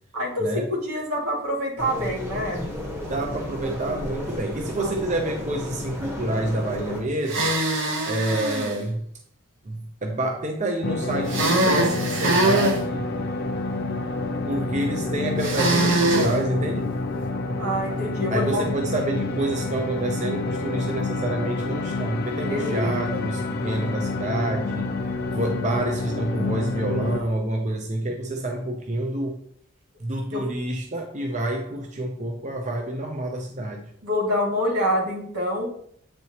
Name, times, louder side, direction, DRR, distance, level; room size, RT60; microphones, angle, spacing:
voice 1, 0.1-2.7 4.8-5.0 17.6-18.7 22.4-23.3 30.3-30.5 34.0-35.7, equal, 85° right, -2 dB, 2.1 m, -26 dB
sound 1, 1.8-7.0, left 1 dB, 10° right, 1.0 m, -33 dB
voice 2, 3.1-7.5 8.1-9.0 9.6-13.1 14.5-16.9 18.3-24.9 25.3-29.4 30.0-33.9, right 1 dB, 30° right, 2 dB, 0.6 m, -28 dB
sound 2, 7.2-8.7 11.3-12.8 15.4-16.3, right 2 dB, 55° right, 0.9 m, -22 dB
sound 3, 10.8-27.2, left 3 dB, 45° left, 0.5 m, -28 dB
8.2 x 4.3 x 2.9 m, 0.65 s
head